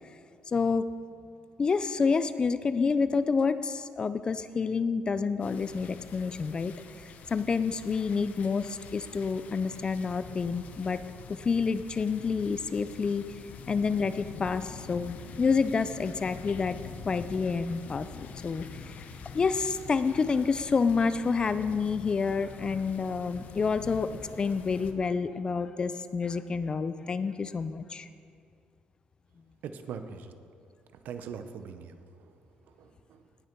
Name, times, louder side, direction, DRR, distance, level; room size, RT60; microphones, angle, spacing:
voice 1, 0.5-0.9 1.6-11.0 11.3-13.4 13.7-16.8 17.0-18.9 19.3-24.1 24.4-28.1, left 5 dB, 30° left, 13 dB, 0.4 m, -28 dB
sound 1, 5.4-24.9, left 5 dB, 55° left, 0.8 m, -45 dB
voice 2, 29.6-30.3 31.0-32.0 32.8-33.2, right 6 dB, 70° right, 9 dB, 0.7 m, -41 dB
18.0 x 6.5 x 4.5 m, 2.3 s
cardioid pair, 135°, 3 cm